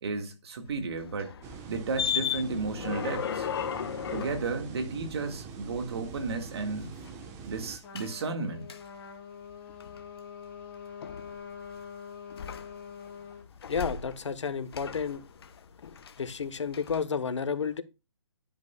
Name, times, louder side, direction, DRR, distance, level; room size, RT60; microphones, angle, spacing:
voice 1, 0.0-1.3 1.7-3.5 4.1-6.9 7.4-8.8, right 4 dB, 55° right, 1.8 m, -33 dB
sound 1, 0.7-5.7 6.1-7.2 8.0-8.1 8.7-8.8 9.5-10.0 11.0-11.8 12.3-13.1 13.4-14.4 14.7-16.4 16.7-17.0, left 8 dB, 50° left, 1.1 m, -36 dB
sound 2, 1.4-7.8, right 5 dB, 20° right, 1.1 m, -44 dB
Trumpet, 7.8-13.5, left 7 dB, 10° left, 2.8 m, -45 dB
voice 2, 13.7-15.2 16.2-17.8, left 6 dB, 70° left, 1.2 m, -31 dB
10.5 x 9.5 x 2.3 m
hypercardioid pair, 150°, 16 cm